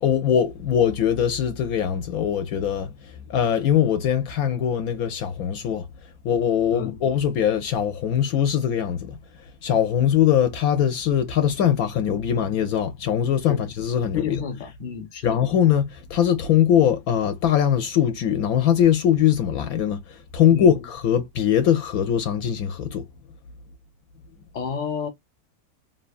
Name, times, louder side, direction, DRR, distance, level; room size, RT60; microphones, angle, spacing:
voice 1, 0.0-5.9 6.2-9.2 9.6-14.4 15.2-23.1, left 9 dB, 75° left, 1.0 m, -21 dB
voice 2, 14.1-15.4 20.5-20.7 24.5-25.1, left 6 dB, 40° left, 0.9 m, -30 dB
2.9 x 2.2 x 2.3 m
omnidirectional pair, 1.6 m